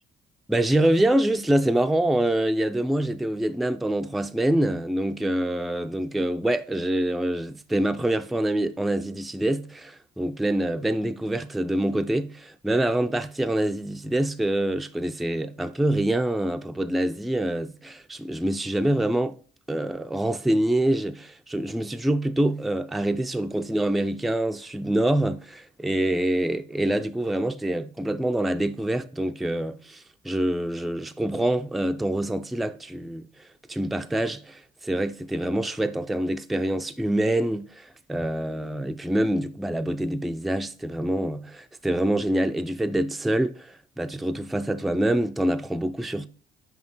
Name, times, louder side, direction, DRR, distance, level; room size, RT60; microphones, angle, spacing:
voice 1, 0.5-19.4 19.7-33.3 33.7-46.3, right 1 dB, ahead, 0.4 m, -25 dB
5.9 x 4.7 x 3.8 m
cardioid pair, 90°, 20 cm